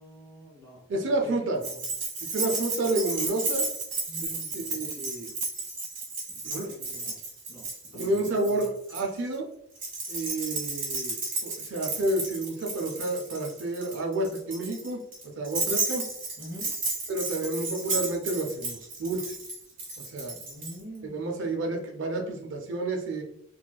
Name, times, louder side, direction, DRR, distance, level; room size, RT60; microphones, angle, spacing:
voice 1, 0.0-1.9 4.1-5.0 6.3-7.2 7.5-7.6 7.9-8.7 16.4-16.7 20.4-22.1, equal, 15° left, -6 dB, 1.5 m, -46 dB
voice 2, 0.9-1.6 2.3-3.7 4.2-4.3 4.5-5.3 6.4-6.7 7.9-9.5 10.1-11.2 11.4-15.0 15.4-16.0 17.1-19.3 20.1-20.3 21.1-23.2, right 2 dB, 55° right, 1 dB, 0.4 m, -30 dB
Keys jangling, 1.6-9.0 9.8-20.7, right 3 dB, 35° right, 1.5 m, -33 dB
4.1 x 2.3 x 2.3 m, 0.74 s
head